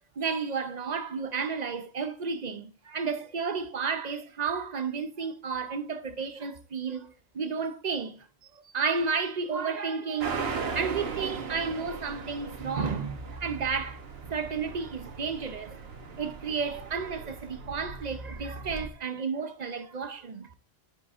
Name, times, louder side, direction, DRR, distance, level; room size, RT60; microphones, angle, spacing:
voice 1, 0.2-8.2 8.7-15.8 16.2-20.5, right 5 dB, 45° right, 0.7 m, -32 dB
sound 1, 10.2-18.9, right 4 dB, 75° right, 1.3 m, -38 dB
10.0 x 6.6 x 2.5 m
omnidirectional pair, 1.1 m